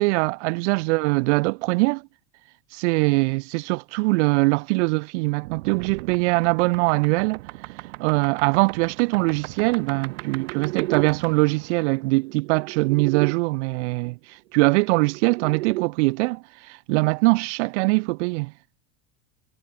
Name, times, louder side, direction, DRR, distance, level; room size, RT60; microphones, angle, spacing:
voice 1, 0.0-2.0 2.7-7.4 8.0-18.5, right 26 dB, 65° right, 0.6 m, -22 dB
sound 1, 5.4-13.3 14.6-15.9, right 20 dB, 80° right, 1.8 m, -35 dB
cardioid pair, 175°, 38 cm